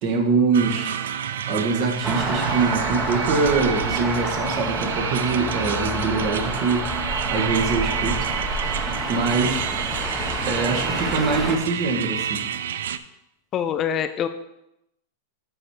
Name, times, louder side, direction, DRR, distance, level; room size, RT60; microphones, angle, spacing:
voice 1, 0.0-1.0 1.5-6.9 7.3-8.3 9.1-9.8 10.5-12.5, right 4 dB, 45° right, 3 dB, 1.6 m, -24 dB
sound 1, 0.5-13.0, right 9 dB, 85° right, 0.4 m, -29 dB
sound 2, 2.0-11.6, right 1 dB, 15° right, 1.1 m, -28 dB
sound 3, 5.9-11.4, left 6 dB, 50° left, 1.2 m, -39 dB
voice 2, 13.5-14.3, left 9 dB, 30° left, 10 dB, 0.4 m, -24 dB
8.9 x 4.3 x 4.8 m, 0.85 s
supercardioid pair, 135°, 0 cm